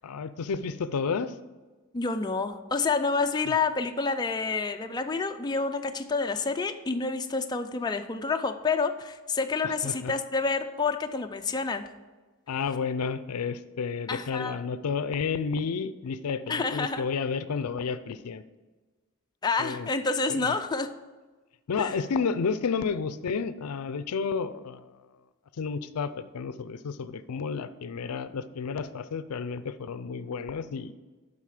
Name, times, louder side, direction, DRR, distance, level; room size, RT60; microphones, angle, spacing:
voice 1, 0.0-1.3 3.5-3.6 9.6-10.1 12.5-18.4 19.6-19.9 20.3-20.5 21.7-25.1 25.6-30.9, left 5 dB, 85° left, 13 dB, 0.5 m, -31 dB
voice 2, 1.9-11.9 14.1-14.6 16.5-17.0 19.4-20.9 21.8-21.9, left 4 dB, 20° left, 6 dB, 0.4 m, -28 dB
11.5 x 4.0 x 4.9 m, 1.3 s
head